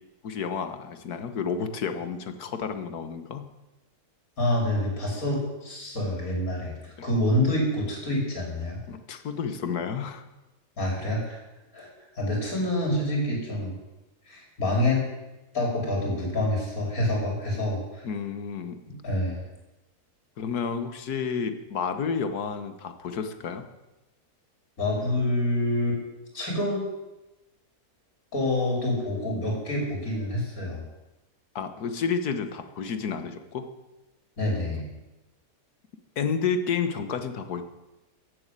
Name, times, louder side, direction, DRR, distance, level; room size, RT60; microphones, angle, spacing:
voice 1, 0.2-3.5 7.0-7.1 8.9-10.3 18.0-18.8 20.4-23.7 31.5-33.7 36.2-37.6, left 6 dB, 80° left, 9 dB, 1.7 m, -30 dB
voice 2, 4.4-8.8 10.8-11.4 11.7-11.9 12.2-13.7 14.3-15.0 15.5-18.0 18.9-19.4 24.8-26.0 26.3-26.9 28.3-30.8 34.4-34.9, left 1 dB, 60° left, -1 dB, 5.0 m, -27 dB
15.0 x 8.6 x 8.2 m, 1.0 s
omnidirectional pair, 1.7 m